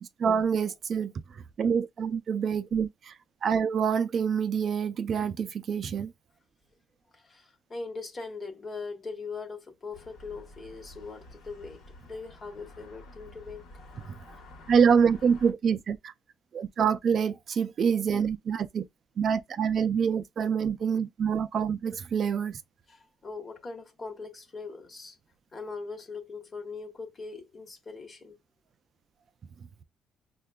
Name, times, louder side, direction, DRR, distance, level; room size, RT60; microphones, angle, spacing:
voice 1, 0.0-3.2 3.4-6.1 14.1-14.2 14.7-16.1 16.5-18.9 19.2-22.6, right 7 dB, 50° right, 0.3 m, -26 dB
voice 2, 7.1-13.7 22.9-25.2 25.5-28.4, left 4 dB, 35° left, 1.0 m, -41 dB
sound 1, 9.9-15.5, left 1 dB, 75° left, 1.0 m, -50 dB
5.6 x 2.2 x 2.2 m
cardioid pair, 110°, 0 cm